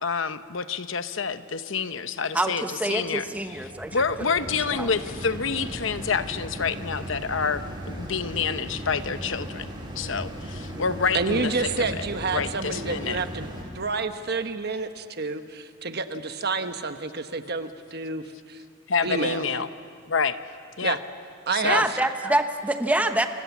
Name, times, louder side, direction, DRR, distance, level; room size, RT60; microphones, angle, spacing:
voice 1, 0.0-3.3 3.9-9.7 10.0-12.0 12.3-13.2 18.9-19.7 20.1-20.4 20.8-21.0 21.5-21.8, left 5 dB, 65° left, 11 dB, 0.9 m, -28 dB
voice 2, 2.3-4.0 4.8-4.9 21.6-23.3, right 1 dB, 5° right, 7 dB, 1.1 m, -25 dB
sound 1, 2.4-13.6, equal, 20° right, 4.3 m, -37 dB
voice 3, 11.1-13.5 13.7-18.6 19.0-19.4 20.8-21.0 21.5-22.0, right 4 dB, 50° right, 8 dB, 1.2 m, -29 dB
29.0 x 25.0 x 7.3 m, 2.3 s
head